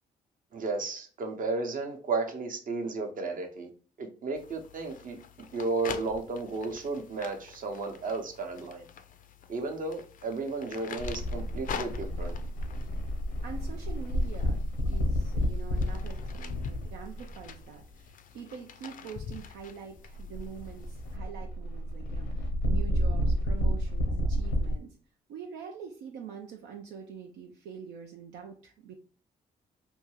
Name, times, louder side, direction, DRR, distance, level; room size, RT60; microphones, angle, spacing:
voice 1, 0.5-3.7 4.0-5.2 5.5-8.9 9.5-12.4, right 3 dB, 50° right, 0.8 m, -33 dB
sound 1, 4.4-21.2, left 7 dB, 50° left, 0.4 m, -45 dB
sound 2, 11.0-17.6 20.0-24.7, equal, 85° left, 0.7 m, -30 dB
voice 2, 13.4-25.0 25.3-28.9, right 7 dB, 75° right, 0.4 m, -45 dB
2.6 x 2.3 x 3.0 m
supercardioid pair, 50°, 18 cm